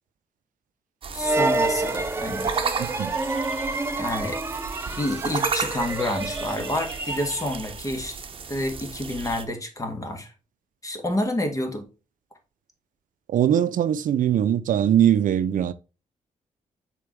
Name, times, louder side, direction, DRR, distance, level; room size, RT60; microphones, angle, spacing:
sound 1, 1.0-9.5, right 5 dB, 40° right, 0.9 m, -34 dB
voice 1, 1.1-2.5 4.0-4.4 5.0-8.2 8.5-10.3 10.8-11.9, left 1 dB, 25° left, 1.9 m, -28 dB
sound 2, 1.2-7.6, right 3 dB, 20° right, 0.6 m, -28 dB
voice 2, 2.8-3.1 13.3-15.7, right 10 dB, 80° right, 0.6 m, -21 dB
6.8 x 4.6 x 3.3 m
cardioid pair, 115°, 14 cm